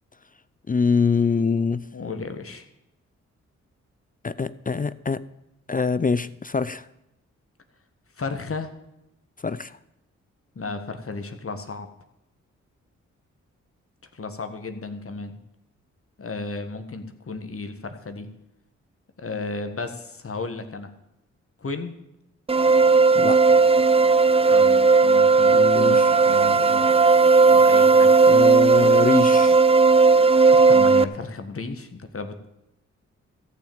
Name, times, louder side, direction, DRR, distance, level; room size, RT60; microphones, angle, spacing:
voice 1, 0.7-1.8 4.2-5.2 5.7-6.9 9.4-9.8 23.1-23.4 25.5-26.2 28.3-29.6, left 5 dB, 25° left, 15 dB, 0.5 m, -24 dB
voice 2, 1.9-2.7 8.2-8.7 10.6-11.9 14.1-15.4 16.2-18.3 19.2-20.9 21.6-21.9 24.5-27.0 27.5-28.1 30.6-32.5, left 3 dB, 45° left, 7 dB, 1.7 m, -34 dB
sound 1, 22.5-31.0, right 4 dB, 20° right, 0.6 m, -16 dB
14.0 x 6.3 x 8.8 m, 0.87 s
supercardioid pair, 50°, 31 cm